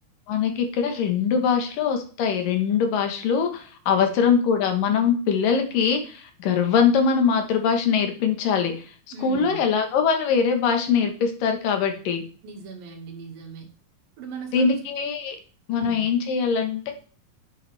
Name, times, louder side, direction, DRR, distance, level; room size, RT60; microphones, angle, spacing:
voice 1, 0.3-8.7 9.2-12.2 14.5-15.4 15.7-16.9, left 6 dB, 75° left, 5 dB, 3.1 m, -22 dB
voice 2, 3.9-4.3 9.1-9.6 12.4-13.7 14.2-14.8 15.7-16.0, right 4 dB, 85° right, 2 dB, 3.7 m, -39 dB
9.8 x 8.6 x 3.5 m, 0.40 s
omnidirectional pair, 4.0 m